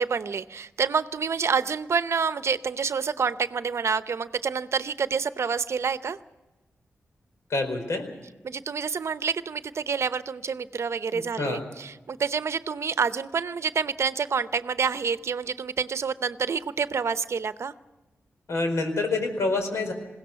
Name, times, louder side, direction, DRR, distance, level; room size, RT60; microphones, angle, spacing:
voice 1, 0.0-6.2 8.4-17.7, right 6 dB, 70° right, 13 dB, 0.8 m, -28 dB
voice 2, 7.5-8.1 11.1-11.6 18.5-19.9, left 3 dB, 75° left, 5 dB, 4.3 m, -27 dB
21.0 x 17.0 x 8.3 m, 1.1 s
cardioid pair, 60°, 5 cm